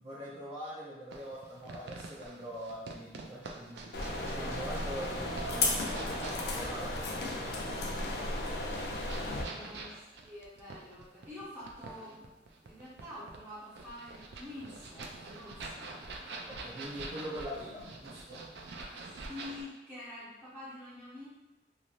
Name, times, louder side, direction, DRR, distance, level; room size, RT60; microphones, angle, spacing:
voice 1, 0.0-4.0 4.3-8.3 9.6-9.8 15.8-16.0 16.5-18.5, equal, 35° right, -10 dB, 0.6 m, -43 dB
sound 1, 1.1-19.6, right 3 dB, 75° right, 0.4 m, -46 dB
sound 2, 3.9-9.4, left 2 dB, 65° left, 0.5 m, -34 dB
voice 2, 9.3-12.3 12.6-16.3 19.3-21.3, left 1 dB, 10° right, -11 dB, 1.1 m, -47 dB
3.1 x 2.6 x 2.5 m, 1.1 s
head